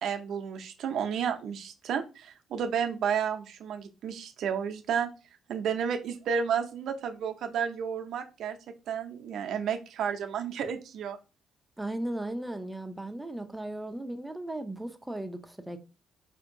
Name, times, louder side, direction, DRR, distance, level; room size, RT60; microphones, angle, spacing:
voice 1, 0.0-5.1 5.5-8.6 8.9-11.2, right 7 dB, 75° right, 0.5 m, -31 dB
voice 2, 11.8-15.8, right 1 dB, 10° right, 0.5 m, -36 dB
4.4 x 2.7 x 2.6 m
cardioid pair, 90°, 0 cm